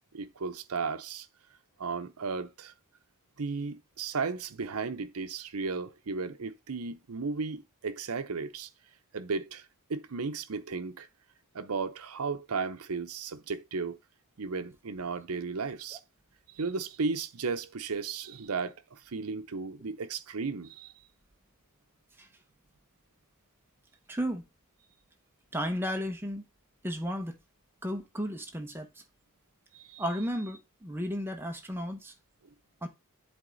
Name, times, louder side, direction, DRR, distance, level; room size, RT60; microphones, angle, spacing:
voice 1, 0.1-1.3 1.8-2.7 3.4-8.7 9.1-9.6 9.9-11.1 11.5-14.0 14.4-16.0 16.5-20.9 29.7-30.0, right 4 dB, 75° right, 0.7 m, -35 dB
voice 2, 24.1-24.4 25.5-26.5 26.8-27.4 27.8-29.0 30.0-32.1 32.8-32.9, equal, 10° right, 1.0 m, -34 dB
8.0 x 3.5 x 3.9 m
head